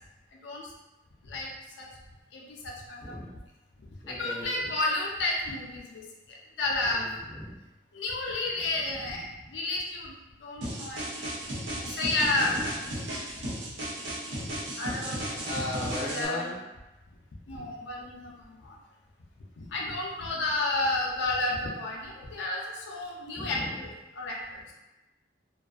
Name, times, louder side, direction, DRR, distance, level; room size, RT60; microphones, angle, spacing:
voice 1, 2.3-3.3 4.1-6.0 6.3-7.1 7.9-10.1 10.4-11.3 11.7-12.5 12.9-13.0 13.5-13.9 14.4-15.4 16.0-16.5 17.5-18.8 19.7-23.9 24.1-24.6, left 2 dB, 75° left, -2 dB, 0.4 m, -32 dB
voice 2, 4.0-4.7 6.8-7.6 8.7-9.3 12.4-12.9 15.4-16.6 20.2-20.5 23.4-23.9, left 1 dB, 20° left, -7 dB, 0.5 m, -38 dB
sound 1, 10.6-16.2, right 1 dB, 80° right, 0.6 m, -35 dB
2.5 x 2.3 x 2.3 m, 1.0 s
head